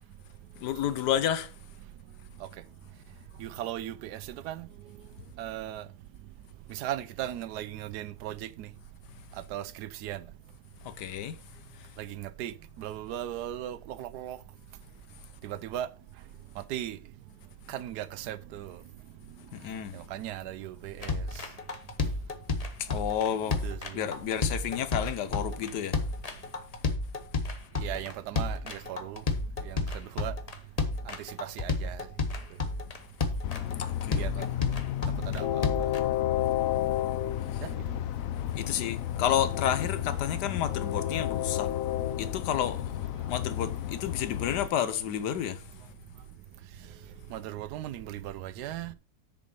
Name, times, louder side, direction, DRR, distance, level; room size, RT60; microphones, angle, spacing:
voice 1, 0.6-1.5 10.8-11.4 11.7-11.9 19.5-19.9 22.8-26.0 33.8-34.5 37.5-37.7 38.5-41.7 42.2-45.9, left 10 dB, 85° left, 1.4 m, -31 dB
voice 2, 3.4-4.7 5.4-5.8 6.7-8.7 9.5-10.2 12.0-14.4 15.4-15.9 16.7-17.0 17.7-18.8 19.9-21.2 23.5-24.0 27.8-29.2 29.6-30.3 31.1-32.0 34.1-34.5 35.3-35.7 37.6-37.7 47.3-48.9, right 12 dB, 80° right, 1.1 m, -37 dB
sound 1, 21.0-36.0, left 3 dB, 35° left, 0.7 m, -31 dB
Train, 33.4-44.7, left 12 dB, 70° left, 0.9 m, -31 dB
6.8 x 5.2 x 5.3 m
omnidirectional pair, 1.7 m